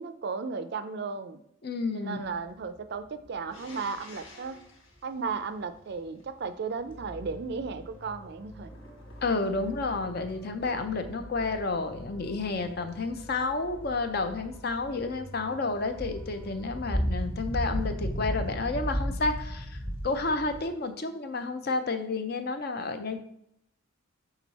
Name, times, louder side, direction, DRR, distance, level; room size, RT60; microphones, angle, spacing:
voice 1, 0.0-1.4 1.9-4.6 5.0-8.7, right 5 dB, 50° right, 10 dB, 0.4 m, -35 dB
voice 2, 1.6-2.2 9.2-23.2, left 3 dB, 50° left, 8 dB, 0.5 m, -31 dB
sound 1, 2.3-2.4 2.6-3.0 3.3-3.5 3.9-4.5 5.1-5.2 6.0-6.1 6.3-7.3 8.0-8.4 8.7-8.8 8.9-9.8 10.0-10.6 11.9-20.6, equal, 25° left, 1.1 m, -34 dB
sound 2, 3.5-6.2 8.6-10.1, left 2 dB, 80° left, 1.4 m, -52 dB
sound 3, 6.9-16.8, equal, 10° left, 0.6 m, -47 dB
6.0 x 3.8 x 4.1 m, 0.75 s
head